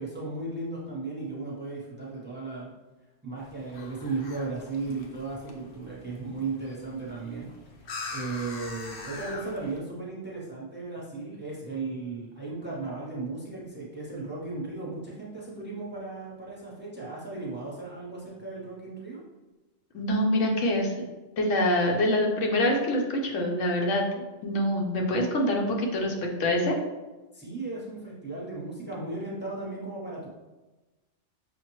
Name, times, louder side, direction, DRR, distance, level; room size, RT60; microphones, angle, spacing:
voice 1, 0.0-2.7 3.2-7.5 8.1-19.2 27.3-30.3, right 3 dB, 10° right, -4 dB, 0.7 m, -36 dB
sound 1, 3.4-9.8, left 3 dB, 60° left, 0.7 m, -43 dB
voice 2, 19.9-20.9 21.4-24.0 24.4-26.7, left 1 dB, 80° left, 0 dB, 1.1 m, -25 dB
6.1 x 2.1 x 3.0 m, 1.1 s
omnidirectional pair, 1.3 m